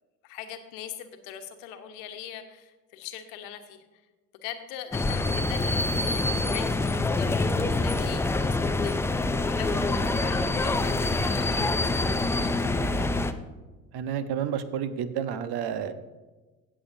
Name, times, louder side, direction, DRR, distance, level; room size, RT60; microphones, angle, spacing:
voice 1, 0.2-3.8 4.4-11.9 12.4-13.2, left 10 dB, 70° left, 7 dB, 1.2 m, -42 dB
sound 1, 4.9-13.3, left 2 dB, 5° left, 0.4 m, -26 dB
voice 2, 13.9-15.9, right 8 dB, 55° right, 11 dB, 1.1 m, -30 dB
16.5 x 7.5 x 2.7 m, 1.2 s
hypercardioid pair, 75°, 46 cm